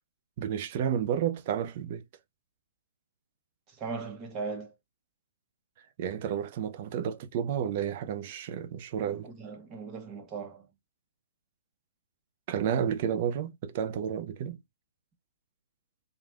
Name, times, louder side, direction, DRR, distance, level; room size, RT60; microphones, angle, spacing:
voice 1, 0.4-2.0 6.0-9.3 12.5-14.6, right 9 dB, 40° right, 0.4 m, -31 dB
voice 2, 3.7-4.7 9.0-10.7, right 4 dB, 20° right, 1.0 m, -39 dB
3.1 x 2.2 x 2.3 m
figure-of-eight pair, 130°, 0 cm